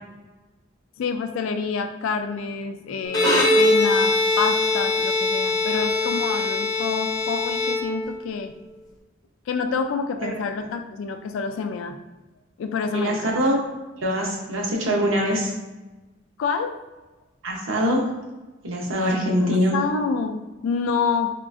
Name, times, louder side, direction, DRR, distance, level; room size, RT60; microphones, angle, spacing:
voice 1, 1.0-8.5 9.5-12.0 12.6-13.4 16.4-16.8 19.0-21.3, left 5 dB, 80° left, 7 dB, 0.3 m, -28 dB
Bowed string instrument, 3.1-8.3, left 2 dB, 20° left, 0.4 m, -22 dB
voice 2, 10.3-10.7 12.9-13.6 14.0-15.5 17.4-18.2 18.6-19.8, equal, 85° right, -1 dB, 0.7 m, -23 dB
3.6 x 2.3 x 2.4 m, 1.1 s
head